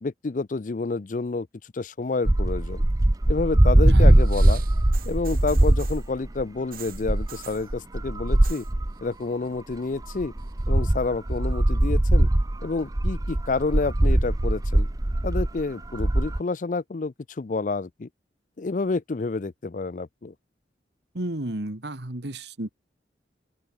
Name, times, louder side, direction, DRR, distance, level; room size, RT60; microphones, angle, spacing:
voice 1, 0.0-2.8 3.3-4.6 5.1-8.7 9.0-10.3 10.7-12.3 12.6-14.9 15.2-18.1 18.6-20.3, left 3 dB, 45° left, 0.5 m, -29 dB
sound 1, 2.3-6.4 6.9-8.9 9.7-9.8 10.0-16.4, right 1 dB, 20° right, 0.6 m, -21 dB
sound 2, 4.1-6.1 6.7-7.7 8.3-8.7 9.0-9.5 9.8-10.6 11.4-11.5, right 10 dB, 50° right, 4.2 m, -45 dB
voice 2, 21.1-22.7, right 1 dB, 70° right, 2.0 m, -32 dB
open air
head